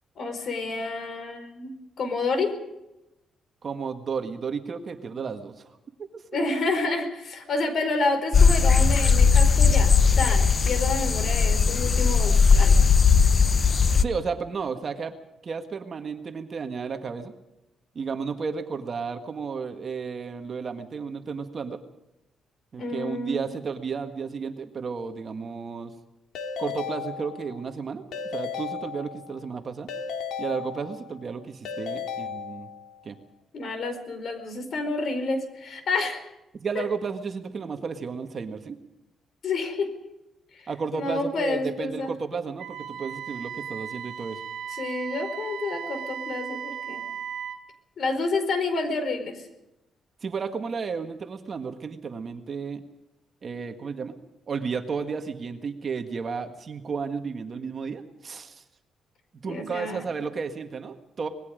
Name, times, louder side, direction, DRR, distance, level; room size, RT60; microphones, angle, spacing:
voice 1, 0.2-2.5 4.8-4.9 6.3-12.8 22.8-23.4 33.5-36.2 36.7-36.8 39.4-39.9 40.5-42.1 44.7-47.1 48.0-49.5 59.5-60.1, left 3 dB, 50° left, 8 dB, 4.5 m, -29 dB
voice 2, 3.6-6.2 6.5-6.7 14.0-15.1 15.4-17.3 17.9-21.8 22.7-25.9 26.6-28.0 28.3-29.9 30.4-32.7 33.0-33.1 36.5-38.8 40.7-44.4 50.2-52.8 53.4-54.2 54.5-58.6 59.4-61.3, right 5 dB, 35° right, 7 dB, 1.7 m, -33 dB
sound 1, 8.3-14.0, left 5 dB, 30° left, 0.8 m, -18 dB
Keyboard (musical) / Ringtone, 26.4-27.7 28.1-29.4 29.9-31.2 31.7-33.0, left 6 dB, 80° left, 2.6 m, -35 dB
Wind instrument woodwind instrument, 42.6-47.6, right 8 dB, 60° right, 2.2 m, -36 dB
25.5 x 20.0 x 5.1 m, 0.90 s
cardioid pair, 140°, 0 cm